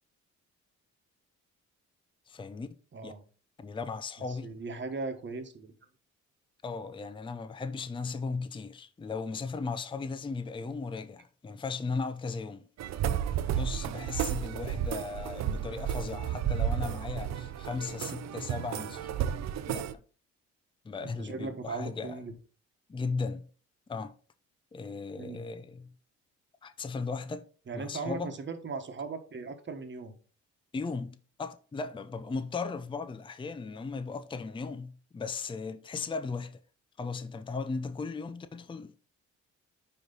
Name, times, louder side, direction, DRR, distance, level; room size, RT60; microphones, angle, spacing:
voice 1, 2.3-2.7 3.0-3.1 3.6-4.5 6.6-12.7 13.4-19.2 19.7-19.8 20.8-22.2 22.9-23.5 23.9-24.1 24.7-25.9 26.6-27.5 27.7-28.3 30.7-36.6 37.0-38.9, left 4 dB, 15° left, 0.5 m, -37 dB
voice 2, 2.9-3.3 4.3-5.7 21.0-22.3 25.2-25.5 27.7-30.2, right 4 dB, 40° right, 1.3 m, -38 dB
sound 1, 12.8-19.9, right 9 dB, 60° right, 0.6 m, -32 dB
9.8 x 3.3 x 3.9 m
cardioid pair, 90°, 30 cm